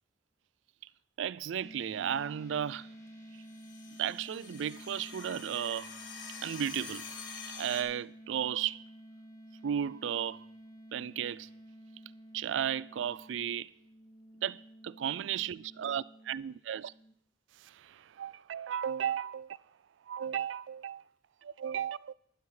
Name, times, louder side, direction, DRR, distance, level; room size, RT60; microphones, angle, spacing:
voice 1, 1.2-2.9 4.0-5.9 6.4-7.0 7.6-8.8 9.6-10.4 10.9-11.5 12.3-13.7 14.4-16.9 17.6-19.6 20.1-21.0 21.4-22.1, right 9 dB, 80° right, 0.3 m, -34 dB
sound 1, 1.6-17.1, right 1 dB, 15° left, 1.8 m, -52 dB
sound 2, 3.5-7.8, left 5 dB, 85° left, 1.6 m, -46 dB
12.0 x 12.0 x 3.8 m
head